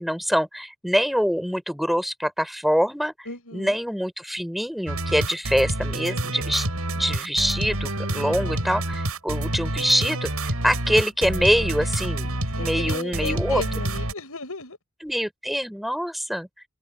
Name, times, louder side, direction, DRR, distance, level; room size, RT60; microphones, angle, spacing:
voice 1, 0.0-6.7 7.0-10.3 10.6-13.6 15.0-16.5, equal, ahead, 6.1 m, -25 dB
voice 2, 3.3-3.8 8.2-8.7 12.6-14.8, left 3 dB, 85° left, 7.0 m, -35 dB
sound 1, 4.9-14.1, right 1 dB, 90° right, 8.0 m, -28 dB
head